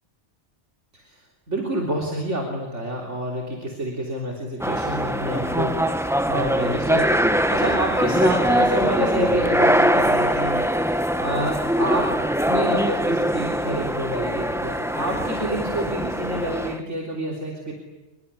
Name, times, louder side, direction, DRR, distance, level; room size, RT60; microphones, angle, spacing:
voice 1, 0.9-12.1 12.5-17.7, right 1 dB, 90° right, 0 dB, 3.9 m, -28 dB
sound 1, 4.6-16.8, equal, 5° right, 0.9 m, -22 dB
26.5 x 22.0 x 9.8 m, 1.1 s
omnidirectional pair, 1.2 m